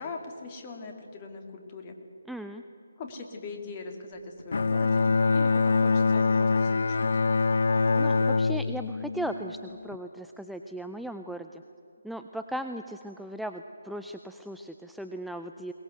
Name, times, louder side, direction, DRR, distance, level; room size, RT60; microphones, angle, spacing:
voice 1, 0.0-1.9 3.0-7.1, left 3 dB, 30° left, 4 dB, 2.6 m, -41 dB
voice 2, 2.3-2.6 8.0-11.6 12.0-15.7, right 1 dB, ahead, 6 dB, 0.5 m, -37 dB
Bowed string instrument, 4.5-10.0, left 4 dB, 60° left, 0.4 m, -24 dB
22.5 x 19.0 x 8.1 m, 2.9 s
figure-of-eight pair, 150°, 0 cm